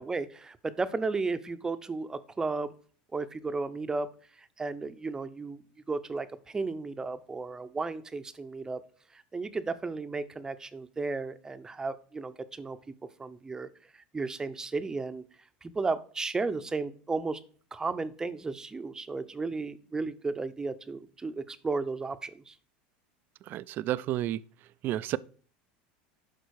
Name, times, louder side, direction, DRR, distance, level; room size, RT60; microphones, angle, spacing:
voice 1, 0.0-2.7 3.1-4.1 4.4-5.6 5.9-8.8 9.1-12.9 13.2-13.7 13.9-15.2 15.6-17.4 17.7-22.5, right 3 dB, 15° right, 0.7 m, -34 dB
voice 2, 23.4-24.4 24.8-25.2, right 14 dB, 45° right, 0.4 m, -31 dB
11.0 x 4.4 x 4.7 m
supercardioid pair, 125°, 5 cm